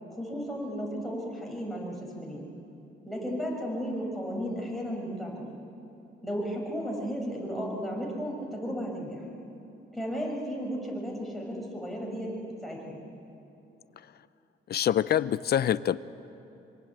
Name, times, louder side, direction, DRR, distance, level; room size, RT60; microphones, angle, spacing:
voice 1, 0.1-2.4 3.1-5.5 6.2-9.3 9.9-12.3 12.6-13.0, equal, ahead, -2 dB, 5.9 m, -34 dB
voice 2, 14.7-16.0, left 10 dB, 55° left, 17 dB, 0.7 m, -25 dB
25.0 x 24.5 x 8.7 m, 2.9 s
cardioid pair, 125°, 19 cm